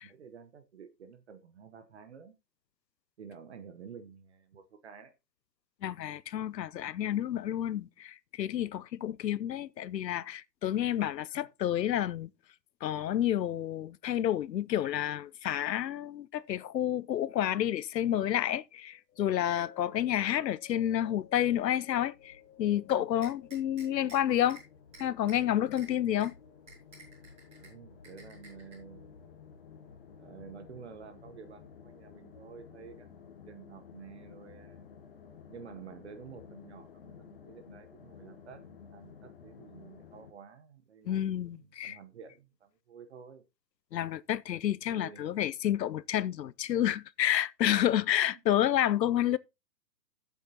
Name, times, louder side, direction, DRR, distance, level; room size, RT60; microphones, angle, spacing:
voice 1, 0.0-2.3 3.2-5.1 27.6-29.2 30.2-34.8 35.5-43.4 44.9-45.3, right 6 dB, 40° right, 1.0 m, -51 dB
voice 2, 5.8-12.3 12.8-24.6 25.0-26.3 41.1-42.0 43.9-49.4, left 11 dB, 80° left, 0.7 m, -30 dB
sound 1, 21.1-40.3, left 6 dB, 35° left, 1.1 m, -54 dB
sound 2, 23.2-24.2 24.5-24.6 24.9-25.4 25.8-25.9 26.2-26.3 26.7-27.7 28.0-28.8, right 2 dB, 15° right, 6.3 m, -51 dB
15.5 x 7.4 x 2.8 m
hypercardioid pair, 165°, 50 cm